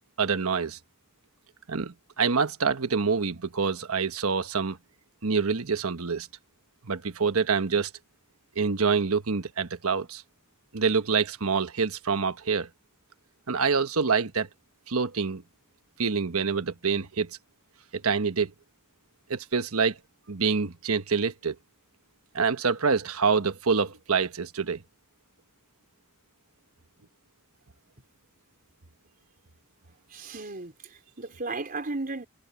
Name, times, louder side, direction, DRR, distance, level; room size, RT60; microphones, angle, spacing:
voice 1, 0.2-0.8 1.7-4.8 5.2-6.3 6.8-7.9 8.6-10.2 10.7-12.7 13.5-14.5 14.9-15.4 16.0-17.3 18.0-18.5 19.3-19.9 20.3-21.5 22.3-24.8, right 5 dB, 80° right, 1.2 m, -26 dB
voice 2, 30.1-32.3, right 3 dB, 40° right, 4.2 m, -35 dB
head